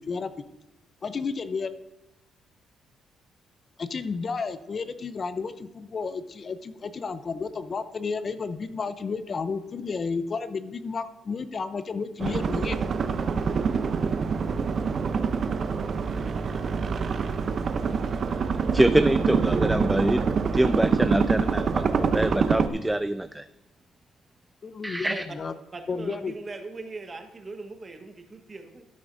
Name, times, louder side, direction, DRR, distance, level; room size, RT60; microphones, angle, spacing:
voice 1, 1.0-1.7 3.8-12.8 24.6-25.5 25.9-26.3, left 4 dB, 40° left, 11 dB, 0.6 m, -32 dB
sound 1, 12.2-22.7, right 5 dB, 50° right, 0.7 m, -25 dB
voice 2, 18.7-23.5 24.8-25.2, right 1 dB, 10° right, 12 dB, 0.3 m, -25 dB
voice 3, 25.7-28.9, right 3 dB, 30° right, 6 dB, 1.2 m, -39 dB
12.5 x 9.1 x 2.6 m, 1.0 s
cardioid pair, 90°, 0 cm